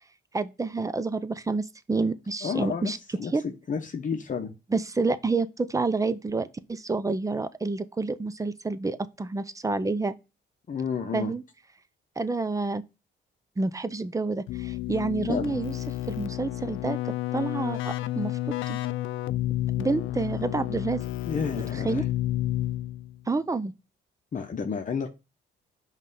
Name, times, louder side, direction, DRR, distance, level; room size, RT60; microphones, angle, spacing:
voice 1, 0.3-3.0 3.3-3.4 4.7-10.1 11.1-11.4 12.2-12.8 13.6-15.7 16.1-18.4 18.7-18.8 19.8-21.0 21.7-22.0 23.3-23.7, right 3 dB, 15° right, 0.6 m, -28 dB
voice 2, 2.4-2.9 3.2-4.5 10.7-11.3 15.3-15.6 21.3-22.0 24.3-25.1, left 6 dB, 40° left, 0.9 m, -31 dB
Keyboard (musical), 14.5-23.2, left 15 dB, 80° left, 0.4 m, -31 dB
5.4 x 3.3 x 5.5 m
cardioid pair, 90°, 20 cm